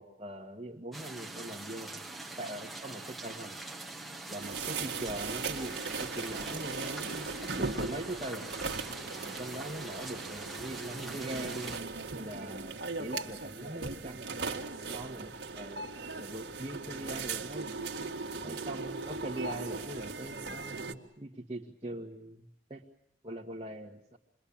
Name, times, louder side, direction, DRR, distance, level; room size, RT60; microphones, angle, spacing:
voice 1, 0.0-2.0 2.4-3.6 4.3-8.5 9.2-11.8 12.2-14.3 14.8-17.7 18.4-22.9 23.2-24.2, right 1 dB, 25° right, -4 dB, 1.8 m, -42 dB
sound 1, 0.9-11.8, right 2 dB, ahead, 1.6 m, -44 dB
sound 2, 4.4-20.9, right 4 dB, 60° right, 1.9 m, -38 dB
28.5 x 22.0 x 8.8 m, 0.74 s
head